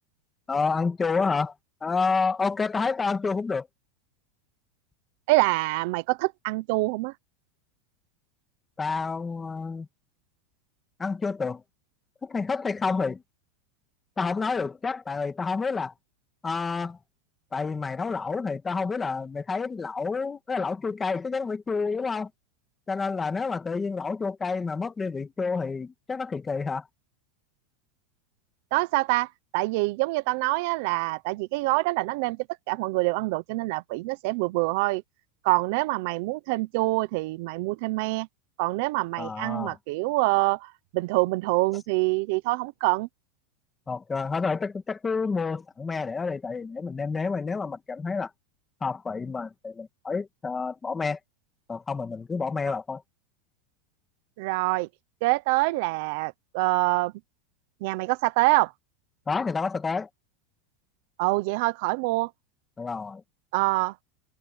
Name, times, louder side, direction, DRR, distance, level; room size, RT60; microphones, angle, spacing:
voice 1, 0.5-1.5 1.8-3.7 8.8-9.9 11.0-11.6 12.2-13.2 14.2-15.9 16.4-17.0 17.5-22.3 22.9-26.9 39.2-39.8 43.9-48.3 48.8-51.2 51.7-53.0 59.3-60.1 62.8-63.2, left 4 dB, 10° left, 2.0 m, -29 dB
voice 2, 5.3-7.1 28.7-32.4 32.7-35.0 35.4-38.3 38.6-43.1 54.4-54.9 55.2-57.1 57.8-58.7 61.2-62.3 63.5-63.9, right 22 dB, 50° right, 0.7 m, -25 dB
supercardioid pair, 170°, 0 cm